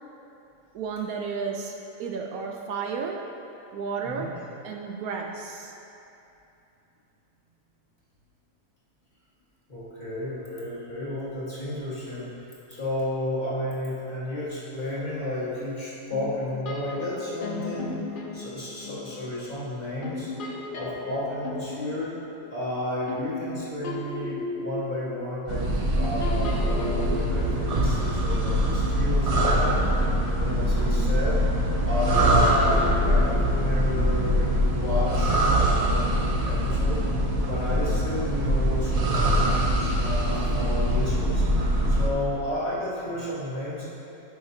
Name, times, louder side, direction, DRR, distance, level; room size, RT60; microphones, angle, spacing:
voice 1, 0.7-1.7 2.0-3.3 3.7-4.4 4.6-5.7, right 5 dB, 75° right, 1 dB, 1.0 m, -32 dB
voice 2, 9.7-18.0 18.3-20.3 20.7-22.1 22.5-25.7 26.0-30.0 30.4-31.4 31.8-37.0 37.4-41.5 41.9-43.9, left 1 dB, 30° left, -9 dB, 1.7 m, -32 dB
sound 1, 16.1-19.6 20.0-29.4 29.6-34.8, left 3 dB, 60° left, 0.5 m, -37 dB
sound 2, 25.5-42.1, right 1 dB, 55° right, 0.4 m, -23 dB
11.5 x 5.7 x 2.7 m, 2.8 s
omnidirectional pair, 1.6 m